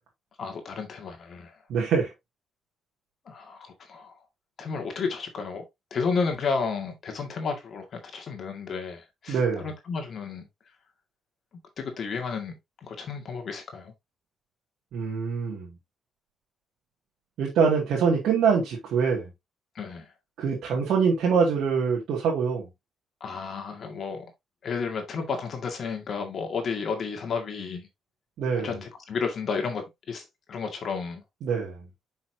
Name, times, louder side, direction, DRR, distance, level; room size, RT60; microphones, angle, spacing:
voice 1, 0.4-1.6 3.3-4.2 4.6-5.6 5.9-10.5 11.8-13.9 19.8-20.1 23.2-24.3 24.6-27.9 28.5-31.2, left 5 dB, 55° left, 1.9 m, -32 dB
voice 2, 1.7-2.1 9.3-9.7 14.9-15.7 17.4-19.3 20.4-22.6 28.4-28.7 31.4-31.8, right 6 dB, 75° right, 2.1 m, -24 dB
6.3 x 5.6 x 2.8 m
cardioid pair, 90°, 0 cm